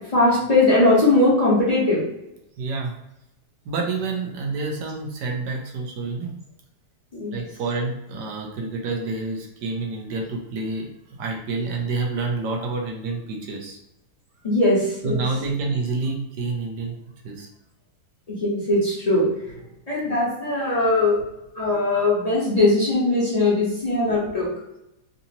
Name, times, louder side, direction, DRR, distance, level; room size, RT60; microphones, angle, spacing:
voice 1, 0.1-2.0 7.1-7.4 14.4-15.2 18.3-19.2 19.9-21.2 21.5-24.5, left 2 dB, 25° left, -6 dB, 1.0 m, -20 dB
voice 2, 2.6-2.9 3.6-6.3 7.3-13.8 15.0-16.9 17.2-17.5, right 3 dB, 90° right, 1 dB, 1.4 m, -28 dB
4.0 x 2.8 x 2.8 m, 0.88 s
omnidirectional pair, 1.8 m